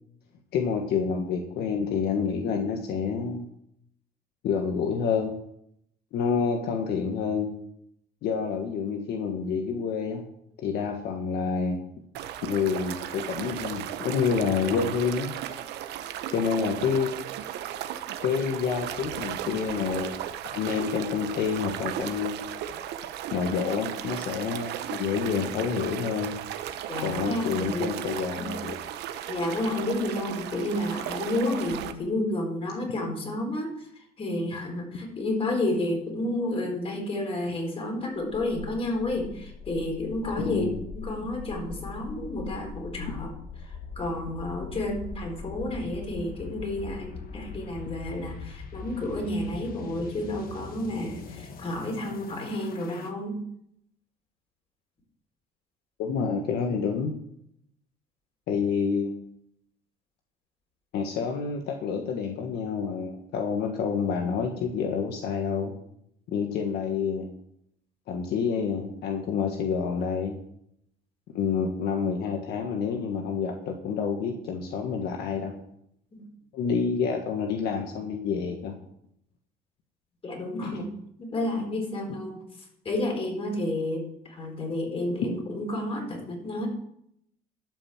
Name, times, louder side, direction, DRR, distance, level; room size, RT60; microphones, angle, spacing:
voice 1, 0.5-3.5 4.4-5.3 6.1-7.5 8.2-10.2 10.6-11.8 12.4-15.3 16.3-17.1 18.2-20.2 20.5-22.7 23.3-26.3 27.0-28.7 40.4-40.8 56.0-57.1 58.5-59.3 60.9-65.7 66.3-67.3 68.1-70.3 71.3-75.5 76.5-78.7 80.6-80.8, left 6 dB, 75° left, 3 dB, 1.5 m, -28 dB
sound 1, 12.1-31.9, right 11 dB, 80° right, 1.0 m, -36 dB
voice 2, 26.9-27.9 28.4-28.5 29.3-40.7 40.9-43.3 43.6-53.4 76.1-76.2 80.2-80.9 81.2-86.7, left 1 dB, 35° left, 1 dB, 4.4 m, -31 dB
sound 2, 38.1-53.1, left 5 dB, 60° left, 1.5 m, -41 dB
12.5 x 5.9 x 7.3 m, 0.74 s
cardioid pair, 110°, 17 cm